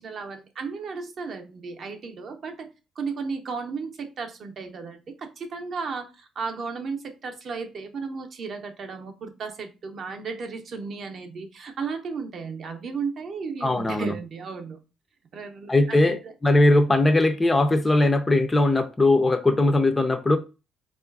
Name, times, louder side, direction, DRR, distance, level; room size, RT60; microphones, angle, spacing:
voice 1, 0.0-2.7 3.0-14.8 15.3-16.3, right 5 dB, 45° right, 0.5 m, -34 dB
voice 2, 13.6-14.1 15.7-20.4, left 2 dB, 15° left, 0.3 m, -20 dB
3.7 x 2.4 x 2.3 m
cardioid pair, 130°, 0 cm